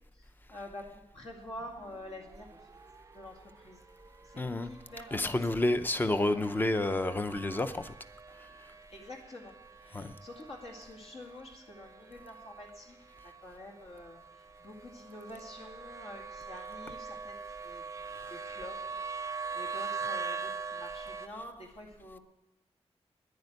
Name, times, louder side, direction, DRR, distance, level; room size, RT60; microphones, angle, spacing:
voice 1, 0.1-2.7 3.1-3.9 4.2-5.4 8.9-13.0 13.2-22.2, left 1 dB, 60° left, -1 dB, 2.1 m, -48 dB
sound 1, 1.6-21.3, right 5 dB, 30° right, 0.4 m, -43 dB
voice 2, 4.4-4.7 5.1-7.9 9.9-10.2, left 2 dB, 15° left, 10 dB, 0.6 m, -29 dB
10.5 x 9.6 x 9.3 m, 0.88 s
wide cardioid pair, 175°, 11 cm